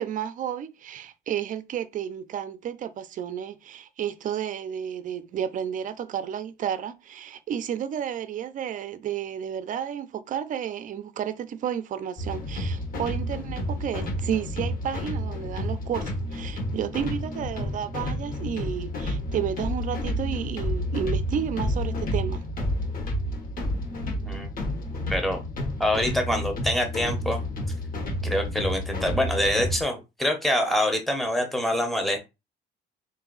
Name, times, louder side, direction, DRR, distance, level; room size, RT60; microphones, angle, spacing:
voice 1, 0.0-22.5, right 9 dB, 45° right, 0.5 m, -32 dB
sound 1, 12.2-29.8, left 1 dB, 50° left, 1.2 m, -30 dB
voice 2, 24.1-24.5 25.1-25.4 25.8-27.4 28.2-32.2, left 1 dB, ahead, 0.8 m, -25 dB
3.9 x 2.6 x 3.9 m
cardioid pair, 140°, 19 cm